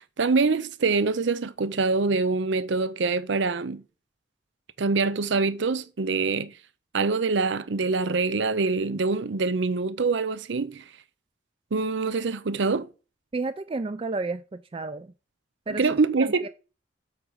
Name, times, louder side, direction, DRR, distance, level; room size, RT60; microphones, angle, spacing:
voice 1, 0.0-3.8 4.8-6.6 6.9-10.8 11.7-12.9 15.7-16.5, right 4 dB, 75° right, 0.6 m, -25 dB
voice 2, 13.3-15.1 15.7-15.9 16.4-16.5, right 3 dB, 30° right, 0.4 m, -31 dB
8.1 x 4.8 x 6.3 m
head